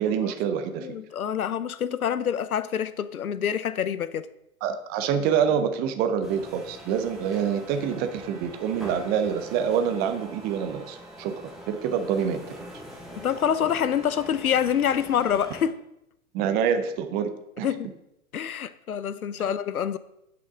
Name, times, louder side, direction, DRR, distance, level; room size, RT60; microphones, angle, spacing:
voice 1, 0.0-1.0 4.6-11.3 11.7-12.6 16.3-17.3 17.6-17.7, right 7 dB, 20° right, 0.6 m, -26 dB
voice 2, 0.8-4.3 13.2-15.7 17.6-17.9 18.3-20.0, left 8 dB, 80° left, 0.6 m, -26 dB
sound 1, 6.2-15.6, equal, ahead, 1.8 m, -43 dB
10.5 x 5.9 x 3.7 m
figure-of-eight pair, 105°, 43 cm